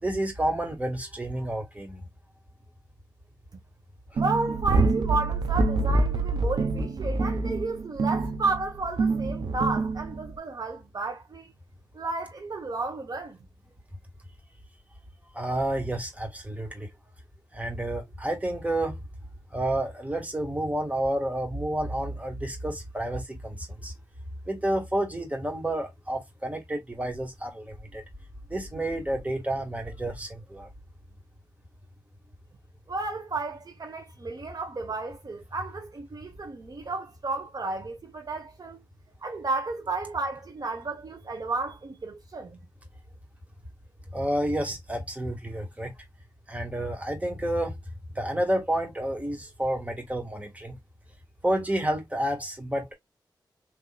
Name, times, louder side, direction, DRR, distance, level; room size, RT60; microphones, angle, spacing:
voice 1, 0.0-2.0 4.1-4.2 15.3-16.9 17.5-19.0 19.5-23.9 24.5-28.0 28.5-30.7 44.1-45.9 46.5-47.8 48.1-50.8 51.4-52.9, right 1 dB, 20° right, 1.8 m, -30 dB
voice 2, 4.1-11.5 11.9-13.4 32.9-38.8 39.2-42.6, right 3 dB, 55° right, 1.0 m, -32 dB
sound 1, 4.2-10.4, right 3 dB, 85° right, 0.9 m, -26 dB
3.9 x 2.9 x 2.4 m
cardioid pair, 60°, 8 cm